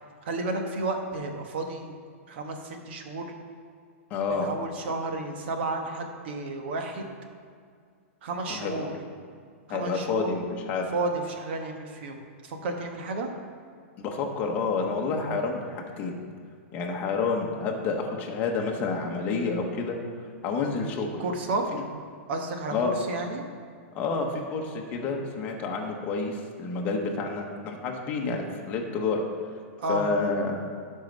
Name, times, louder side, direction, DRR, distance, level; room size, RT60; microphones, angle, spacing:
voice 1, 0.2-1.9 2.3-3.3 4.3-7.1 8.2-8.9 9.7-10.3 10.9-12.2 12.4-13.3 21.2-21.6 22.3-23.4 29.8-30.1, right 2 dB, 50° right, 4 dB, 1.2 m, -32 dB
voice 2, 4.1-4.5 8.5-8.9 9.7-10.9 14.0-16.2 16.7-20.0 20.4-21.1 21.7-21.8 22.7-23.0 23.9-29.2 29.9-30.6, left 4 dB, 20° left, 1 dB, 1.0 m, -29 dB
11.5 x 5.6 x 5.3 m, 2.1 s
supercardioid pair, 170°, 8 cm